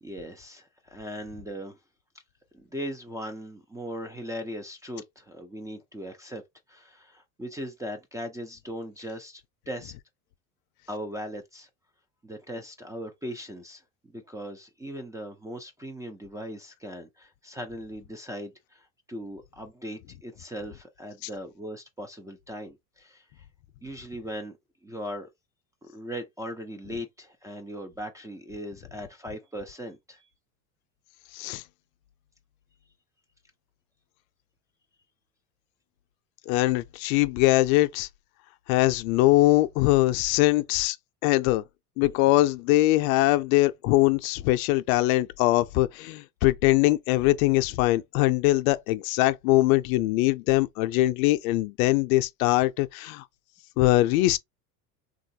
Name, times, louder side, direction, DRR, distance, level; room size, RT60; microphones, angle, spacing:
voice 1, 0.0-1.8 2.5-6.4 6.7-9.9 10.9-11.7 12.2-23.5 23.8-24.6 24.8-25.3 25.9-30.3, equal, 10° right, 0.4 m, -39 dB
voice 2, 36.5-38.1 38.7-41.0 41.2-41.6 42.0-53.2 53.8-54.4, left 18 dB, 65° left, 0.5 m, -22 dB
3.0 x 2.4 x 2.7 m
hypercardioid pair, 100°, 46 cm